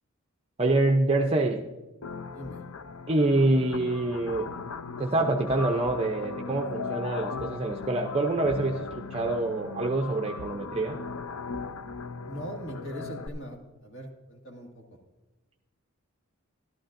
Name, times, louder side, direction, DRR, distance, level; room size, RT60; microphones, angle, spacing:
voice 1, 0.6-1.6 3.1-4.5 5.0-11.0, right 2 dB, 25° right, 2 dB, 0.5 m, -26 dB
sound 1, 2.0-13.3, left 4 dB, 70° left, 0.5 m, -38 dB
voice 2, 2.3-2.6 12.2-14.8, equal, 55° left, 1 dB, 1.9 m, -40 dB
14.0 x 12.0 x 2.5 m, 1.1 s
head